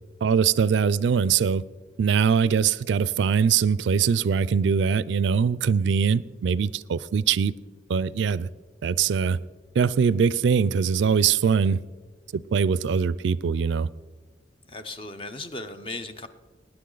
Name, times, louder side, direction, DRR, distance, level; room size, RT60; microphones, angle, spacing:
voice 1, 0.2-1.6 2.0-7.5 7.9-8.5 8.8-9.4 9.8-11.8 12.3-13.9, right 6 dB, 75° right, 20 dB, 0.3 m, -22 dB
voice 2, 14.7-16.3, left 2 dB, 30° left, 9 dB, 0.7 m, -36 dB
19.0 x 9.7 x 3.9 m, 1.3 s
head